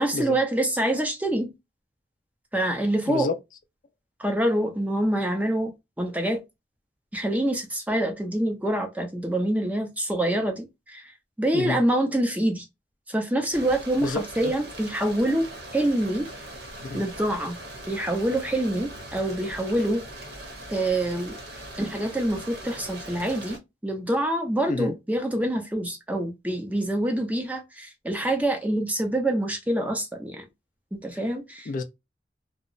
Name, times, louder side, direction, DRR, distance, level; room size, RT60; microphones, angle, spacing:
voice 1, 0.0-1.5 2.5-3.3 4.2-5.7 6.0-6.4 7.1-11.1 11.4-12.7 13.1-16.3 16.9-17.6 17.9-20.1 20.7-21.4 21.8-30.5 30.9-31.7, right 1 dB, 10° right, 0.5 m, -26 dB
voice 2, 3.1-3.4 11.5-11.8 14.0-14.5 16.8-17.0 24.7-25.0 31.7-31.8, left 3 dB, 50° left, 0.3 m, -29 dB
sound 1, 13.5-23.6, right 1 dB, 70° right, 1.0 m, -40 dB
2.7 x 2.0 x 2.5 m
head